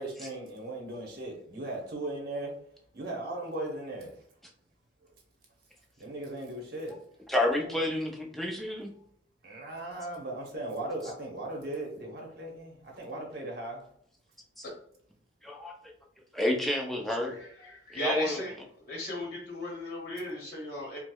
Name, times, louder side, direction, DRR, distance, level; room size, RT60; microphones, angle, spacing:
voice 1, 0.0-2.5 2.9-4.1 6.0-7.0 9.4-13.8, right 1 dB, 55° right, 0 dB, 0.9 m, -37 dB
voice 2, 7.3-8.9 14.6-14.7 15.4-15.7 16.3-17.4 17.9-18.4, left 1 dB, ahead, 0 dB, 0.4 m, -30 dB
voice 3, 17.3-18.5 18.9-21.0, left 1 dB, 45° left, -3 dB, 0.8 m, -36 dB
4.5 x 2.0 x 2.2 m, 0.66 s
head